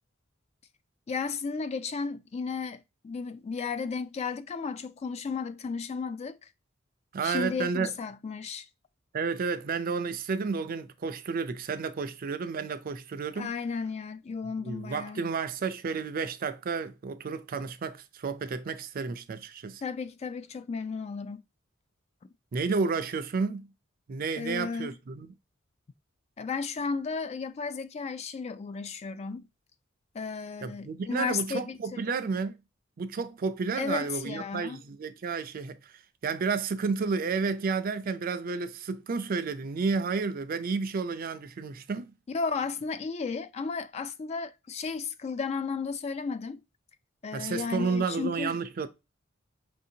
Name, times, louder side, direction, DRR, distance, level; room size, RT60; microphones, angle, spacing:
voice 1, 1.1-6.5 7.2-8.7 13.4-15.2 19.8-21.4 24.4-24.9 26.4-29.5 30.1-32.0 33.7-34.8 42.3-46.6 47.2-48.6, left 5 dB, 35° left, 0.3 m, -34 dB
voice 2, 7.1-7.9 9.1-13.5 14.6-19.8 22.5-23.7 24.1-25.3 30.6-32.5 33.0-42.1 47.3-48.9, right 4 dB, 45° right, 0.4 m, -31 dB
5.6 x 2.7 x 2.7 m
head